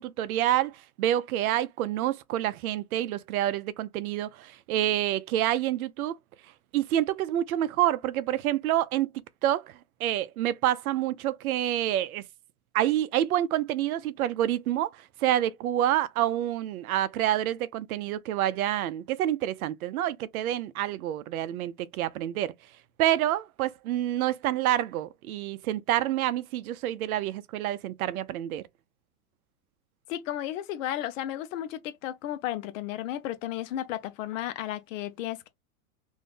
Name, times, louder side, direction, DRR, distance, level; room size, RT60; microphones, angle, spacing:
voice 1, 0.0-6.2 6.7-9.1 9.4-9.7 10.0-12.2 12.7-22.5 23.0-28.6, right 12 dB, 75° right, 0.6 m, -28 dB
voice 2, 30.1-35.5, left 12 dB, 60° left, 0.8 m, -33 dB
2.7 x 2.6 x 3.5 m
hypercardioid pair, 130°, 43 cm